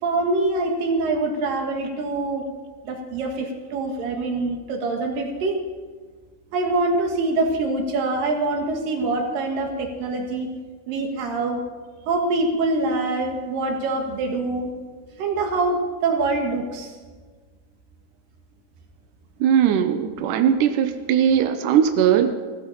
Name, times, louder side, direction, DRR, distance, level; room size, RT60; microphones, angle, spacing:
voice 1, 0.0-2.4 2.8-5.6 6.5-10.5 10.9-11.7 12.1-14.7 15.2-16.9, right 2 dB, 65° right, 3 dB, 3.2 m, -24 dB
voice 2, 19.4-22.3, right 9 dB, 80° right, 7 dB, 1.9 m, -19 dB
16.5 x 14.0 x 5.5 m, 1.4 s
omnidirectional pair, 4.7 m